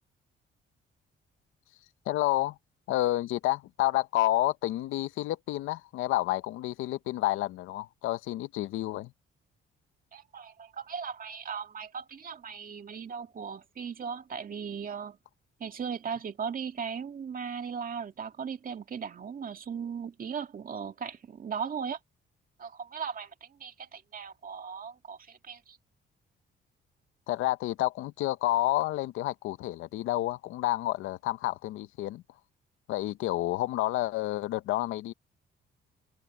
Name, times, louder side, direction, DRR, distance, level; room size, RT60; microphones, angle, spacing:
voice 1, 2.1-2.6 2.9-9.1 27.3-32.2 32.9-35.1, left 15 dB, 90° left, 0.7 m, -29 dB
voice 2, 10.1-15.2 15.6-22.0 22.6-25.8, right 6 dB, 45° right, 2.1 m, -38 dB
cardioid pair, 90°, 20 cm